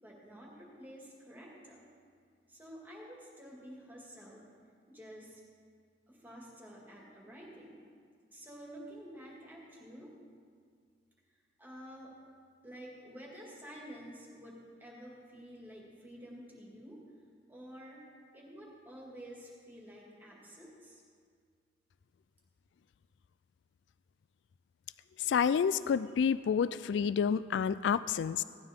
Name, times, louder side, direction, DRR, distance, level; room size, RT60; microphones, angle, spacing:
voice 1, 0.0-1.9 2.5-4.5 4.9-5.4 6.1-7.8 8.3-10.1 11.6-12.1 12.6-17.0 17.5-18.0 18.3-21.0, equal, 10° right, -4 dB, 2.2 m, -50 dB
voice 2, 25.3-28.4, left 7 dB, 90° left, 16 dB, 0.3 m, -29 dB
17.0 x 13.0 x 3.7 m, 2.1 s
head